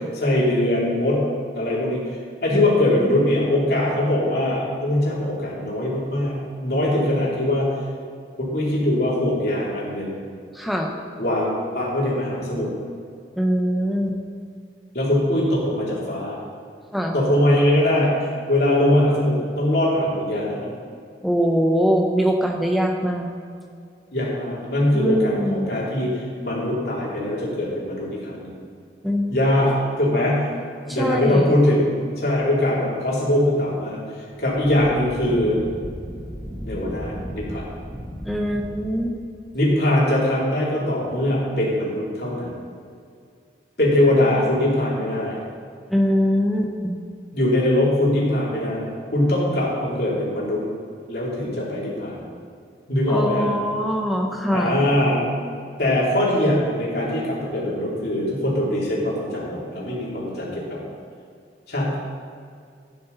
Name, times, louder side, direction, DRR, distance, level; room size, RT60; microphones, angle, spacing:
voice 1, 0.1-1.3 1.5-7.7 8.4-10.2 11.2-12.7 14.9-16.4 17.1-20.7 24.1-28.6 29.3-30.5 30.8-35.6 36.6-37.7 39.5-42.5 43.8-45.4 47.3-50.6 51.1-52.2 52.9-53.5 54.5-55.2 55.8-60.8 61.7-62.0, left 1 dB, 60° left, -5 dB, 3.3 m, -22 dB
voice 2, 10.5-10.9 13.4-14.2 16.9-17.1 21.2-23.3 24.9-25.7 29.0-29.3 31.0-31.5 38.3-39.2 45.9-46.9 53.1-54.8, equal, ahead, 1 dB, 1.0 m, -22 dB
Wind, 34.3-39.2, equal, 15° right, 1.3 m, -35 dB
12.0 x 9.7 x 4.1 m, 2.2 s
head